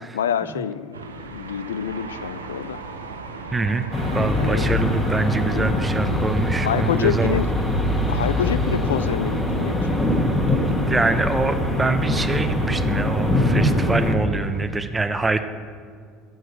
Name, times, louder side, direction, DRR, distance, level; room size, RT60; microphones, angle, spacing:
voice 1, 0.0-2.8 4.4-4.7 5.5-5.9 6.6-7.5 8.1-9.9, left 8 dB, 80° left, 14 dB, 0.3 m, -27 dB
sound 1, 0.9-14.7, right 5 dB, 85° right, 0.6 m, -37 dB
voice 2, 3.5-3.9 4.1-7.4 10.9-15.4, right 3 dB, 15° right, 10 dB, 0.6 m, -24 dB
sound 2, 3.9-14.1, left 1 dB, 15° left, 1.4 m, -23 dB
7.9 x 6.4 x 5.8 m, 2.1 s
figure-of-eight pair, 65°, 0 cm